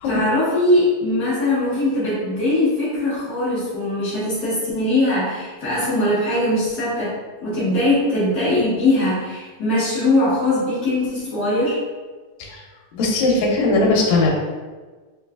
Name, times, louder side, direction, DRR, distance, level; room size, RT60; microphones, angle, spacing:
voice 1, 0.0-7.2 7.4-11.8, left 1 dB, 60° left, -11 dB, 1.0 m, -21 dB
voice 2, 12.9-14.3, left 2 dB, 80° left, -1 dB, 2.0 m, -18 dB
4.5 x 3.1 x 2.3 m, 1.4 s
omnidirectional pair, 3.3 m